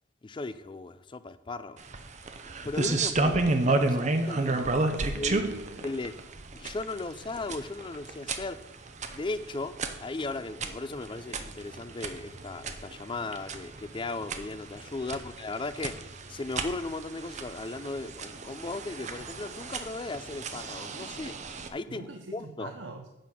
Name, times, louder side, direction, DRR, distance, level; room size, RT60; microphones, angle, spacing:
voice 1, 0.2-1.8 2.6-4.5 5.2-5.4 5.8-6.1 6.5-8.6 9.1-9.8 10.0-21.3 21.7-22.1 22.3-22.7, left 3 dB, 25° left, 13 dB, 0.4 m, -36 dB
sound 1, 1.8-21.7, right 2 dB, 35° right, 0.7 m, -32 dB
voice 2, 4.4-5.9 15.0-15.1 21.9-23.1, right 3 dB, 70° right, 5 dB, 0.7 m, -43 dB
10.5 x 4.1 x 7.4 m, 0.96 s
head